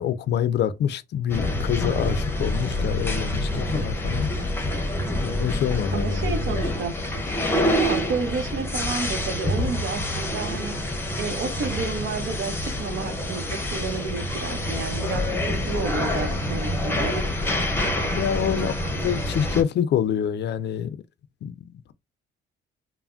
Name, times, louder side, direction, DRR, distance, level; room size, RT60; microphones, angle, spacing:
voice 1, 0.0-4.3 5.2-6.6 18.2-18.7 19.0-21.0 21.4-21.9, left 9 dB, 60° left, 0.4 m, -26 dB
sound 1, 1.3-19.6, left 1 dB, 10° left, 0.7 m, -27 dB
voice 2, 5.9-7.0 7.7-10.8 11.2-17.2 18.5-18.7, right 5 dB, 70° right, 0.8 m, -31 dB
3.2 x 2.0 x 2.4 m
cardioid pair, 90°, 20 cm